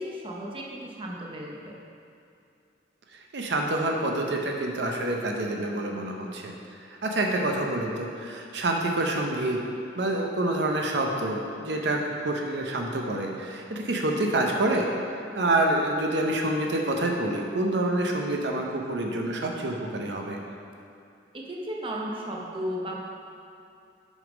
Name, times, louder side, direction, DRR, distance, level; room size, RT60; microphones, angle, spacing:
voice 1, 0.0-1.8 21.3-23.0, equal, 30° right, -2 dB, 0.7 m, -34 dB
voice 2, 3.3-6.5 7.0-9.6 10.0-14.9 15.4-20.4, right 1 dB, 70° right, 1 dB, 0.7 m, -27 dB
6.3 x 5.3 x 5.0 m, 2.5 s
head